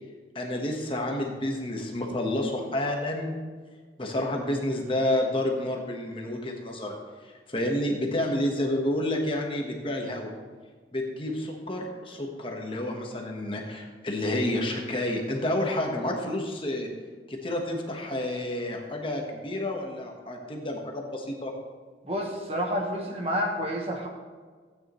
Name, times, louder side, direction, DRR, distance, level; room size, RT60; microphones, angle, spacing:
voice 1, 0.3-3.3 4.0-10.3 10.9-16.9 17.3-21.5, left 1 dB, 30° left, 1 dB, 1.3 m, -30 dB
voice 2, 22.0-24.1, equal, 35° right, 1 dB, 1.4 m, -29 dB
15.5 x 9.1 x 3.1 m, 1.5 s
head